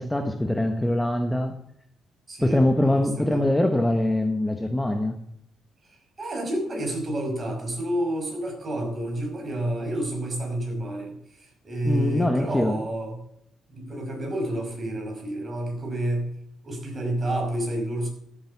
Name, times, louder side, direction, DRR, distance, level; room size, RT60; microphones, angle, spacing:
voice 1, 0.0-1.6 2.4-5.2 11.8-12.8, left 1 dB, 5° left, 1.0 m, -23 dB
voice 2, 2.3-2.6 2.8-3.5 5.9-13.2 13.7-16.3 16.6-18.1, right 1 dB, 30° right, 5.7 m, -29 dB
13.5 x 9.0 x 7.0 m
cardioid pair, 120°, 0 cm